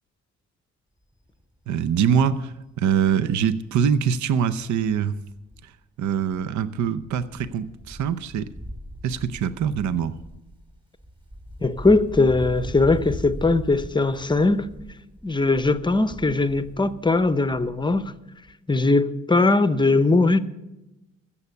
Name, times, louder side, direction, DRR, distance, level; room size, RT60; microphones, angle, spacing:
Wind, 1.1-1.4 1.8-1.9 2.2-5.7 6.0-18.2 18.4-18.5, equal, 15° right, 2.3 m, -40 dB
voice 1, 1.7-5.2 5.6-5.7 6.0-8.5 9.0-10.2, right 8 dB, 70° right, 0.7 m, -24 dB
voice 2, 11.6-14.7 15.2-18.1 18.7-20.4, left 3 dB, 15° left, 0.7 m, -20 dB
15.0 x 7.2 x 6.9 m
cardioid pair, 90°, 30 cm